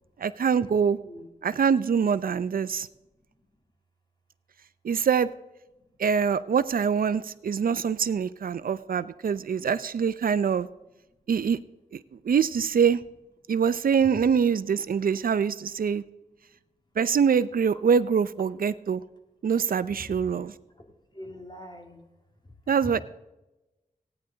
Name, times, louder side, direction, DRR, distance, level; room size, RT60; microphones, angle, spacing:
voice 1, 0.2-1.0 1.4-2.9 4.8-5.3 6.0-10.7 11.3-11.6 11.9-13.0 13.5-16.0 17.0-19.0 19.4-20.5 22.7-23.0, right 6 dB, 75° right, 15 dB, 0.5 m, -24 dB
voice 2, 1.0-1.3 14.0-14.2 20.0-20.2 21.1-22.0 22.8-23.0, left 1 dB, 30° left, 2 dB, 2.1 m, -42 dB
16.0 x 9.7 x 3.9 m, 1.0 s
cardioid pair, 55°, 15 cm